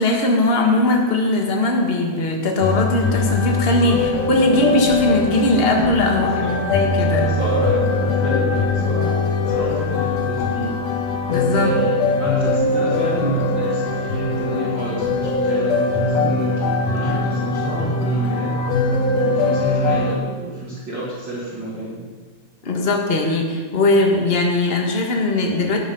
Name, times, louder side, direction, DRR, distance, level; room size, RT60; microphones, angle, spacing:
voice 1, 0.0-7.3 11.3-11.7 22.6-25.8, left 2 dB, 30° left, 1 dB, 1.2 m, -19 dB
sound 1, 2.6-20.2, left 3 dB, 65° left, 2.3 m, -21 dB
voice 2, 6.2-6.6 7.0-10.8 11.5-16.6 16.9-18.6 19.2-22.0, right 1 dB, 40° right, -6 dB, 2.8 m, -29 dB
12.5 x 10.5 x 5.5 m, 1.4 s
omnidirectional pair, 3.3 m